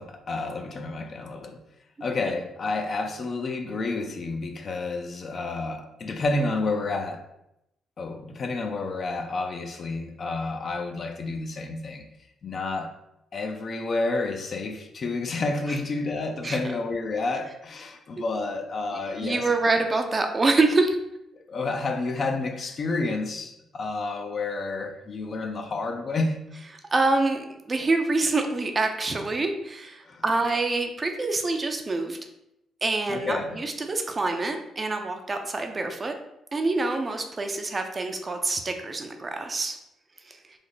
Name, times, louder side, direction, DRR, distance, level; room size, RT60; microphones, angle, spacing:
voice 1, 0.0-1.6 2.0-7.2 8.0-12.0 12.4-12.9 13.3-19.5 21.4-26.4 30.0-30.2 33.1-33.6, left 3 dB, 45° left, 5 dB, 0.4 m, -30 dB
voice 2, 18.9-21.0 26.9-32.2 32.8-36.1 36.5-39.8 40.2-40.4, right 3 dB, 30° right, 5 dB, 0.4 m, -26 dB
3.3 x 2.0 x 3.8 m, 0.84 s
cardioid pair, 90°, 0 cm